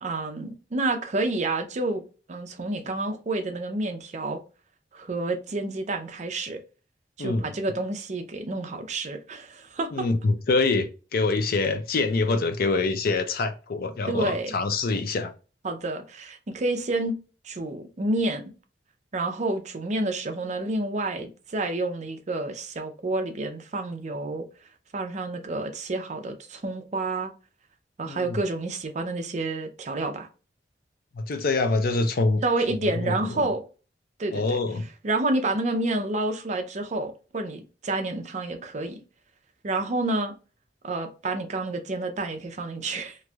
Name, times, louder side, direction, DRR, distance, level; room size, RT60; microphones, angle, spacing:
voice 1, 0.0-2.0 2.3-4.4 4.9-6.6 7.2-10.1 14.1-14.5 15.6-17.1 17.4-18.4 19.1-24.5 24.9-27.3 28.0-30.3 32.4-33.6 34.2-34.6 35.0-39.0 39.6-40.3 40.8-43.2, right 2 dB, 40° right, 0.5 m, -29 dB
voice 2, 9.9-15.3 28.0-28.4 31.1-32.4 32.7-33.5 34.3-34.9, left 3 dB, 55° left, 0.5 m, -25 dB
3.0 x 2.5 x 2.3 m
head